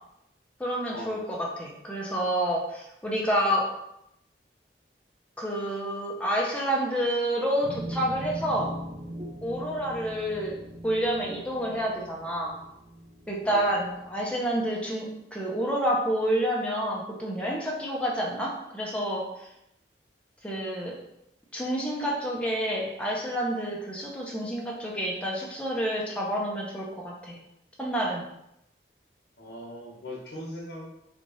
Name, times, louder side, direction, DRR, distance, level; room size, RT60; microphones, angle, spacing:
voice 1, 0.6-3.7 5.4-8.7 9.4-10.6 10.8-12.5 13.3-19.2 20.4-21.0 21.5-27.4 27.8-28.2, equal, 5° left, -3 dB, 0.6 m, -29 dB
sound 1, 7.6-14.2, right 1 dB, 35° right, 0.4 m, -40 dB
voice 2, 29.4-30.9, left 1 dB, 70° left, -2 dB, 1.1 m, -39 dB
3.2 x 2.4 x 4.0 m, 0.82 s
head